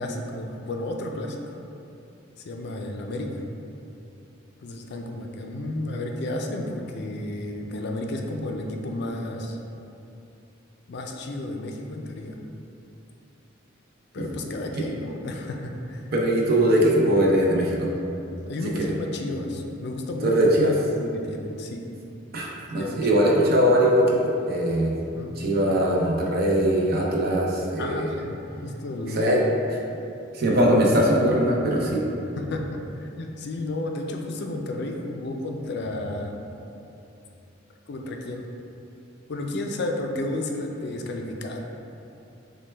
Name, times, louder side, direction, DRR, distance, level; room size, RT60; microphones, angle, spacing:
voice 1, 0.0-1.6 2.4-3.3 4.6-9.6 10.9-12.4 14.1-16.1 18.5-20.3 20.9-21.8 22.7-23.2 25.1-25.3 27.8-29.4 32.4-36.4 37.9-38.4 39.3-41.6, left 1 dB, 55° left, 2 dB, 0.4 m, -32 dB
voice 2, 16.1-17.9 18.8-18.9 20.2-20.7 22.3-24.9 25.4-28.1 29.1-29.4 30.3-32.0, equal, 50° right, -2 dB, 0.6 m, -21 dB
6.2 x 2.2 x 3.3 m, 2.7 s
head